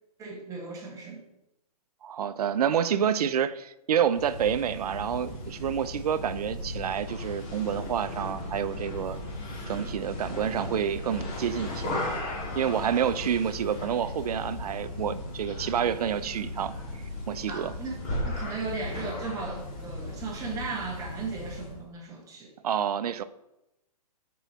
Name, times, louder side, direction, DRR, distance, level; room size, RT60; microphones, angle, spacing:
voice 1, 0.2-1.2 17.5-18.0 18.2-22.5, right 4 dB, 15° right, 0 dB, 1.2 m, -36 dB
voice 2, 2.0-9.2 9.7-11.9 12.5-16.7 17.3-17.7 22.6-23.2, right 8 dB, 70° right, 13 dB, 0.5 m, -28 dB
sound 1, 4.0-21.8, left 1 dB, 30° left, 1.8 m, -36 dB
6.2 x 4.6 x 4.0 m, 0.90 s
hypercardioid pair, 140°, 20 cm